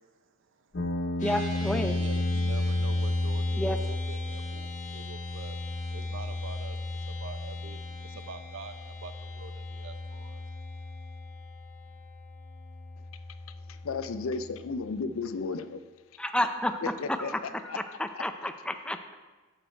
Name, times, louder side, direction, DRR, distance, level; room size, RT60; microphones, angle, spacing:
sound 1, 0.7-14.8, left 1 dB, 55° left, 0.7 m, -33 dB
sound 2, 1.2-14.7, left 4 dB, 40° left, 1.6 m, -47 dB
voice 1, 1.2-2.0 3.6-3.8 16.2-16.8 17.1-17.3 17.6-17.7 18.0-19.1, left 1 dB, 5° left, 0.4 m, -30 dB
voice 2, 2.0-5.6 5.9-10.4, right 4 dB, 65° right, 0.6 m, -46 dB
voice 3, 13.7-15.8 16.8-17.8 18.1-18.2, left 4 dB, 85° left, 0.5 m, -34 dB
9.0 x 6.4 x 4.4 m
head